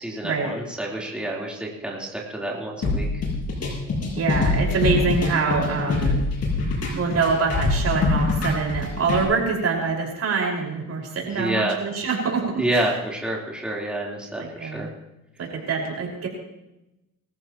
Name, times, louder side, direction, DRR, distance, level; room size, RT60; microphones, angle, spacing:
voice 1, 0.0-3.1 11.3-11.7 12.5-14.9, right 1 dB, 5° right, -4 dB, 3.7 m, -28 dB
sound 1, 2.8-9.2, left 3 dB, 55° left, 5.8 m, -24 dB
voice 2, 4.2-6.2 6.9-12.9 14.4-14.9 15.4-16.3, right 4 dB, 55° right, -1 dB, 5.3 m, -25 dB
24.5 x 14.0 x 3.1 m, 0.93 s
cardioid pair, 90°, 30 cm